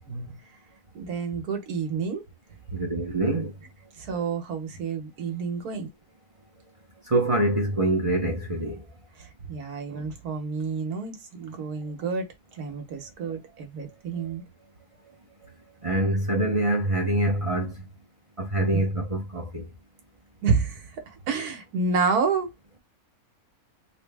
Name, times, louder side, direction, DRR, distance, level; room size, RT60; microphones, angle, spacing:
voice 1, 0.1-0.4 0.9-2.2 4.0-5.9 9.2-12.3 12.6-14.4 18.7-18.8 20.4-22.5, right 5 dB, 90° right, 1.6 m, -29 dB
voice 2, 2.7-3.5 7.1-8.8 15.8-17.7 18.4-19.7, right 1 dB, 35° right, 0.6 m, -25 dB
3.9 x 2.1 x 3.3 m
omnidirectional pair, 1.6 m